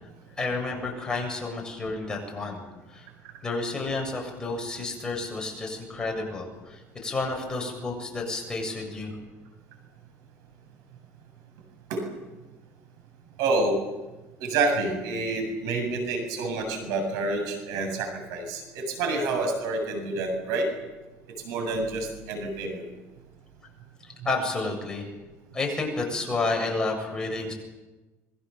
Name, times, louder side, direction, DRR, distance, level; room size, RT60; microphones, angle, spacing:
voice 1, 0.4-2.6 2.9-3.0 3.4-9.1 24.2-25.1 25.5-27.5, left 3 dB, 10° left, 0 dB, 7.6 m, -30 dB
voice 2, 13.4-13.7 14.4-20.6 21.4-22.8, right 3 dB, 80° right, 5 dB, 7.6 m, -28 dB
26.5 x 23.0 x 7.2 m, 1.1 s
cardioid pair, 140°, 6 cm